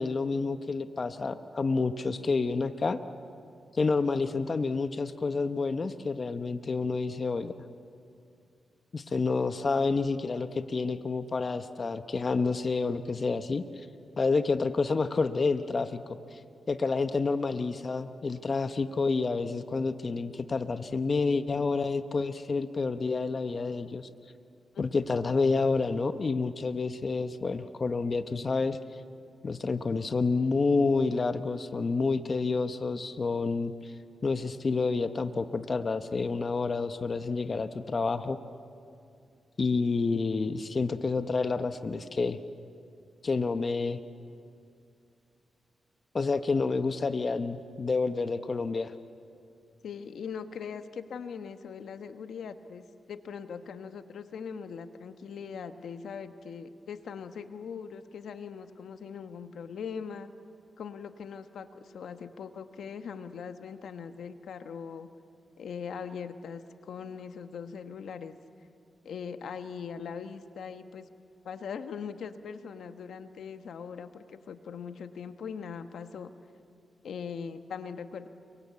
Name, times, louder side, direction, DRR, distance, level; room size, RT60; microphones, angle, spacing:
voice 1, 0.0-3.0 3.8-7.5 8.9-13.9 14.2-16.4 16.7-24.1 24.8-28.8 29.4-33.9 34.2-38.4 39.6-42.4 43.2-44.0 46.1-48.9, left 4 dB, 40° left, 10 dB, 1.0 m, -29 dB
voice 2, 49.8-60.3 60.8-65.1 65.6-68.3 69.0-71.1 71.4-76.3 77.0-78.3, left 6 dB, 80° left, 9 dB, 1.2 m, -40 dB
29.5 x 23.0 x 8.4 m, 2.4 s
cardioid pair, 95°, 0 cm